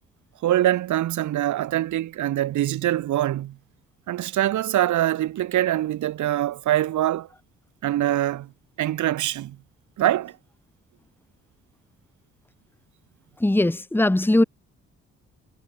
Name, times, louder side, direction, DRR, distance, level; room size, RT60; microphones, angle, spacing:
voice 1, 0.4-3.6 4.1-7.3 7.8-8.5 8.8-9.6 10.0-10.3, right 13 dB, 75° right, 1.7 m, -24 dB
voice 2, 13.4-14.4, left 1 dB, 5° left, 1.5 m, -20 dB
cardioid pair, 90°, 30 cm